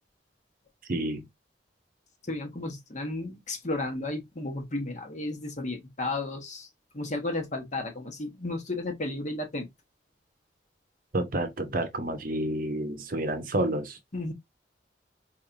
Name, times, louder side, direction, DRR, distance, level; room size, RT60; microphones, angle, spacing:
voice 1, 0.9-1.3 11.1-14.0, right 1 dB, 50° right, 0.8 m, -29 dB
voice 2, 2.2-6.7 6.9-9.7 14.1-14.3, left 2 dB, 45° left, 1.1 m, -33 dB
4.4 x 3.2 x 2.6 m
head